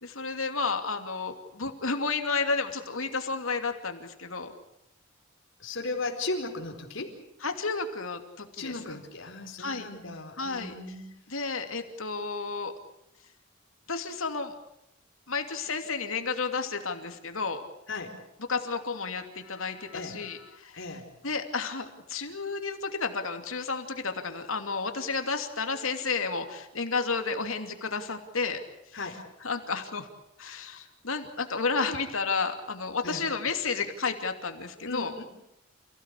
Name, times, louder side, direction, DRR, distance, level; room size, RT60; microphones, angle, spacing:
voice 1, 0.0-4.5 7.4-8.7 9.6-9.9 10.4-10.7 11.3-12.7 13.9-14.5 15.3-17.6 18.5-20.8 21.2-28.6 29.4-30.1 30.4-35.1, left 4 dB, 85° left, 6 dB, 2.7 m, -31 dB
voice 2, 5.6-7.2 8.6-11.0 17.9-18.2 19.9-20.2 20.7-21.1 28.9-29.2 33.0-33.2 34.8-35.2, left 2 dB, 65° left, 3 dB, 4.4 m, -36 dB
29.0 x 16.5 x 8.4 m, 0.83 s
head